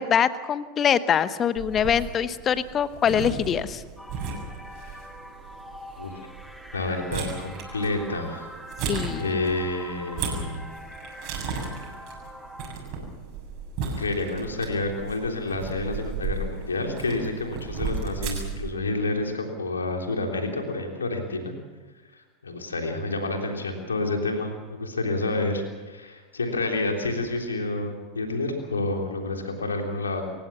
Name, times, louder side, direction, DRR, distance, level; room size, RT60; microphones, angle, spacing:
voice 1, 0.0-3.8 8.9-9.4, left 8 dB, 30° left, 15 dB, 1.0 m, -24 dB
sound 1, 1.6-18.7, right 5 dB, 45° right, 7.5 m, -35 dB
sound 2, 4.0-12.8, equal, ahead, 1.8 m, -43 dB
voice 2, 6.7-8.5 9.1-10.7 14.0-21.5 22.1-30.2, left 2 dB, 75° left, 3 dB, 3.6 m, -29 dB
28.0 x 15.5 x 7.2 m, 1.3 s
figure-of-eight pair, 85°, 0 cm